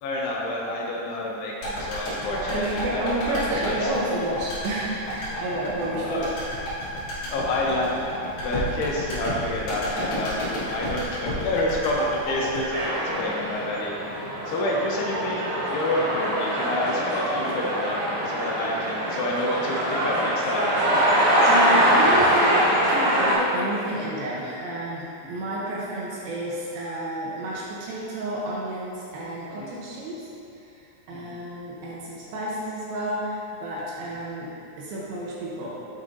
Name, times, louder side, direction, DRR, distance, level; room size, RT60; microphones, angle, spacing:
voice 1, 0.0-3.9 5.3-5.4 6.1-6.3 7.3-8.1 8.3-12.7 13.1-15.4 15.7-18.0 18.3-20.7 29.6-29.7 31.1-31.3, left 1 dB, 85° left, -3 dB, 2.9 m, -28 dB
sound 1, 1.6-13.8 14.1-14.2, equal, 65° left, 3.2 m, -32 dB
voice 2, 2.4-6.3 21.4-30.2 30.6-30.8 31.1-35.7, right 1 dB, 75° right, -6 dB, 2.5 m, -30 dB
sound 2, 12.7-23.3, equal, 60° right, 2.5 m, -23 dB
7.7 x 6.0 x 2.7 m, 2.7 s
omnidirectional pair, 4.7 m